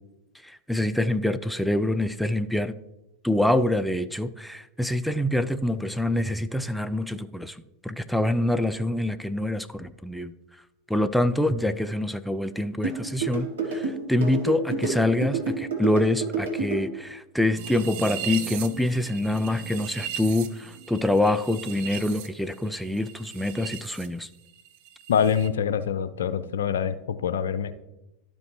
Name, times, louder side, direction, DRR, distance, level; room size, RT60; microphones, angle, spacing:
voice 1, 0.4-2.7 3.2-10.3 10.9-24.3, left 1 dB, ahead, 11 dB, 0.4 m, -26 dB
sound 1, 12.8-16.8, right 4 dB, 70° right, 2.0 m, -28 dB
sound 2, 17.6-24.1 24.3-25.5, right 9 dB, 55° right, 0.7 m, -38 dB
voice 2, 25.1-27.7, left 7 dB, 70° left, 13 dB, 0.5 m, -25 dB
12.0 x 5.2 x 3.1 m, 0.94 s
figure-of-eight pair, 90°, 0 cm